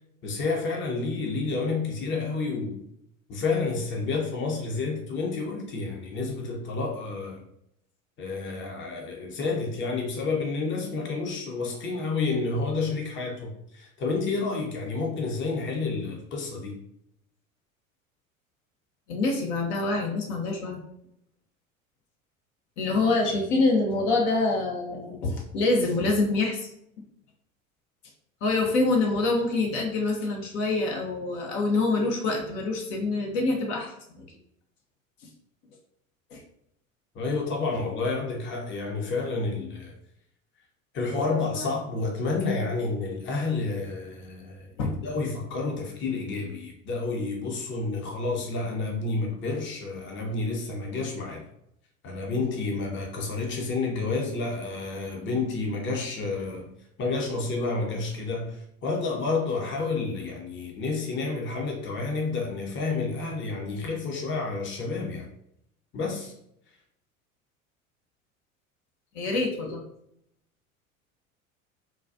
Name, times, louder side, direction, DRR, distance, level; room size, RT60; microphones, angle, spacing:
voice 1, 0.2-2.8 3.3-7.4 8.2-16.8 37.1-39.9 40.9-51.4 52.0-56.7 57.0-65.3 65.9-66.3, left 3 dB, 30° left, 0 dB, 0.8 m, -30 dB
voice 2, 19.1-20.8 22.8-26.7 28.4-34.2 36.3-36.4 41.5-41.7 44.8-45.0 69.1-69.8, left 3 dB, 60° left, 1 dB, 0.8 m, -26 dB
3.9 x 2.3 x 2.5 m, 0.77 s
figure-of-eight pair, 75°, 41 cm